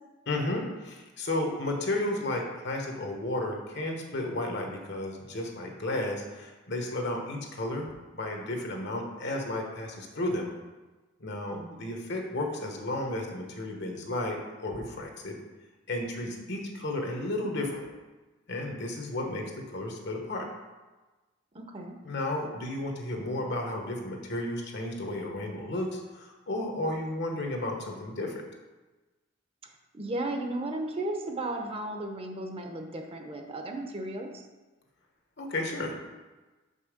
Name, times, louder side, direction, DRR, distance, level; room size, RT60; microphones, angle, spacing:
voice 1, 0.3-7.9 8.1-10.5 11.2-15.3 15.9-17.9 18.5-20.5 22.0-28.4 35.4-35.9, left 1 dB, 65° left, 2 dB, 1.2 m, -33 dB
voice 2, 11.5-11.9 21.5-21.9 29.6-34.3, right 1 dB, 30° right, 3 dB, 0.8 m, -35 dB
6.2 x 5.6 x 5.0 m, 1.2 s
head